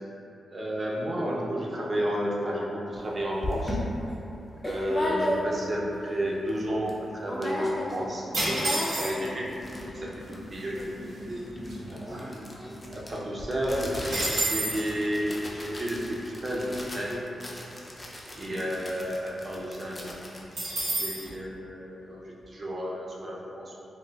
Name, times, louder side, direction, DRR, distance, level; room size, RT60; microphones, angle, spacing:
voice 1, 0.5-3.8 4.6-9.5 9.8-12.3 12.9-17.3 18.4-20.2 21.0-23.7, equal, 35° right, -4 dB, 0.5 m, -32 dB
sound 1, 2.9-3.0 3.4-5.8 6.2-6.3 6.5-7.0 7.3-8.1 8.3-21.4, left 1 dB, 20° left, 0.4 m, -36 dB
sound 2, 8.3-9.4 10.2-10.3 10.5-10.8 11.3-12.8 13.1-13.2 13.5-14.9 20.5-21.3, right 1 dB, 85° right, 1.2 m, -30 dB
4.1 x 2.4 x 2.3 m, 2.9 s
wide cardioid pair, 120°, 0 cm